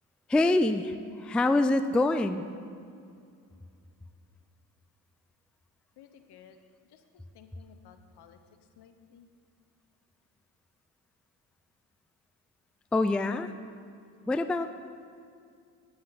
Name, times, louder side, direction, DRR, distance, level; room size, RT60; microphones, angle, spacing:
voice 1, 0.3-2.4 12.9-13.5 14.3-14.7, left 2 dB, 5° left, 11 dB, 0.3 m, -25 dB
voice 2, 6.0-8.4 8.7-9.3, left 8 dB, 70° left, 8 dB, 0.8 m, -56 dB
9.5 x 8.6 x 4.0 m, 2.5 s
supercardioid pair, 55°, 41 cm